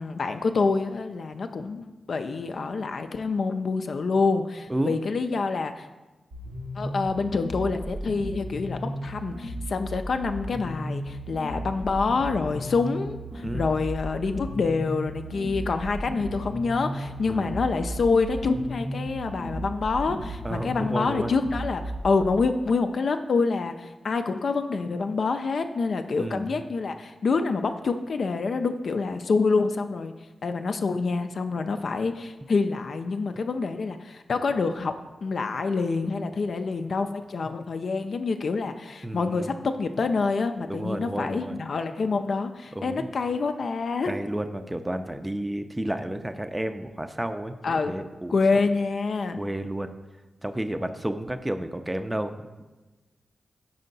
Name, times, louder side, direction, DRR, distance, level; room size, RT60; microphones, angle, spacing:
voice 1, 0.0-5.9 6.8-30.1 30.4-34.9 35.2-44.2 47.6-47.9 48.3-49.4, left 4 dB, 70° left, 7 dB, 0.3 m, -27 dB
sound 1, 6.3-22.3, right 1 dB, 85° right, 1.3 m, -35 dB
voice 2, 17.2-17.6 20.4-21.3 26.2-26.5 39.0-39.5 40.7-41.6 42.8-43.1 44.1-48.6 49.4-50.0 50.4-52.6, right 1 dB, 15° right, 8 dB, 0.4 m, -31 dB
5.5 x 4.4 x 3.9 m, 1.2 s
cardioid pair, 45°, 0 cm